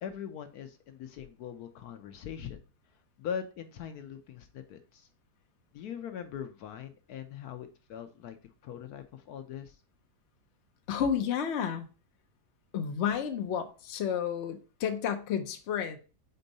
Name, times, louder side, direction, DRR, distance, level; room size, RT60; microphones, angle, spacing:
voice 1, 0.0-2.6 3.2-5.1 5.7-8.4 8.6-9.8, left 8 dB, 75° left, 8 dB, 1.1 m, -41 dB
voice 2, 10.9-11.9 12.7-16.0, left 8 dB, 55° left, 7 dB, 0.9 m, -31 dB
4.5 x 4.0 x 5.3 m, 0.35 s
omnidirectional pair, 1.8 m